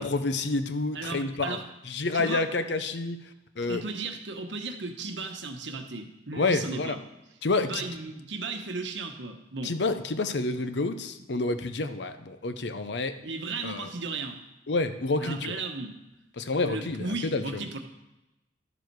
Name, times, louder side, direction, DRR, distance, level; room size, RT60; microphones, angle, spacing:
voice 1, 0.0-1.6 1.8-3.2 3.6-3.8 6.3-7.0 7.4-7.8 9.6-13.2 13.6-13.9 14.7-15.6 16.4-17.6, left 3 dB, 70° left, 10 dB, 0.7 m, -29 dB
voice 2, 0.9-1.6 2.1-2.4 3.6-7.0 7.6-9.8 11.2-11.3 13.2-14.4 15.2-16.0 16.6-17.8, right 3 dB, 90° right, 5 dB, 1.1 m, -35 dB
12.0 x 7.0 x 4.7 m, 0.95 s
head